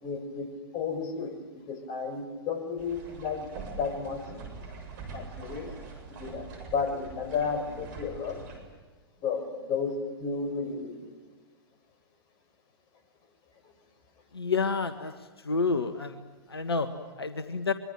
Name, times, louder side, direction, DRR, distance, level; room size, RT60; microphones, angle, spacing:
voice 1, 0.0-3.5 3.8-4.2 5.1-5.7 6.1-8.4 9.2-11.1, left 5 dB, 35° left, 8 dB, 5.1 m, -33 dB
sound 1, 2.8-8.6, right 4 dB, 50° right, 7.2 m, -43 dB
voice 2, 14.3-15.1 15.4-16.2 16.5-16.9 17.2-17.7, left 4 dB, 80° left, 10 dB, 1.6 m, -28 dB
25.0 x 23.5 x 9.2 m, 1.3 s
figure-of-eight pair, 110°, 13 cm